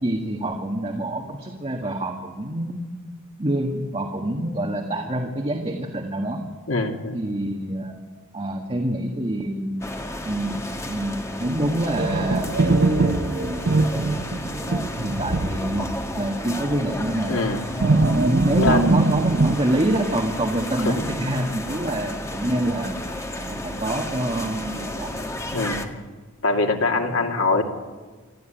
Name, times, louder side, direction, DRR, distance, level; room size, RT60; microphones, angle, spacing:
voice 1, 0.0-2.9 3.4-6.4 7.1-7.9 8.3-9.9 10.2-10.6 10.9-14.3 15.0-15.9 16.2-17.4 18.1-25.1, right 1 dB, 30° right, 2 dB, 1.8 m, -26 dB
voice 2, 6.7-7.2 17.3-17.6 18.6-19.0 20.8-21.1 22.5-22.6 25.5-25.8 26.4-27.6, left 3 dB, 70° left, 2 dB, 2.5 m, -23 dB
sound 1, 9.8-25.9, left 1 dB, 15° left, 1.7 m, -32 dB
sound 2, 12.0-16.3 16.6-16.7 17.8-19.5, right 3 dB, 50° right, 0.9 m, -22 dB
26.5 x 14.0 x 9.1 m, 1.4 s
head